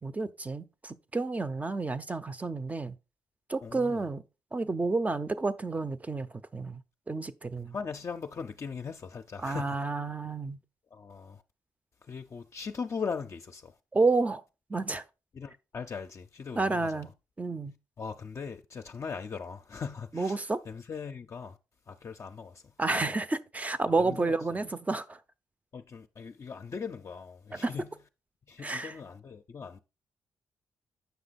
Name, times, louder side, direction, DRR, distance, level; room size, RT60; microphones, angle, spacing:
voice 1, 0.0-2.9 3.5-4.2 4.5-6.8 7.1-7.7 9.4-10.6 13.9-14.4 14.7-15.0 16.6-17.1 17.4-17.7 20.1-20.6 22.8-25.2 27.5-27.7 28.6-28.9, right 3 dB, 20° right, 0.6 m, -30 dB
voice 2, 3.6-4.0 7.7-9.8 10.9-11.4 12.0-13.8 15.3-17.1 18.0-21.6 21.9-22.7 24.0-24.3 25.7-27.9 28.5-29.8, left 5 dB, 40° left, 0.5 m, -39 dB
8.1 x 5.9 x 4.1 m
cardioid pair, 120°, 7 cm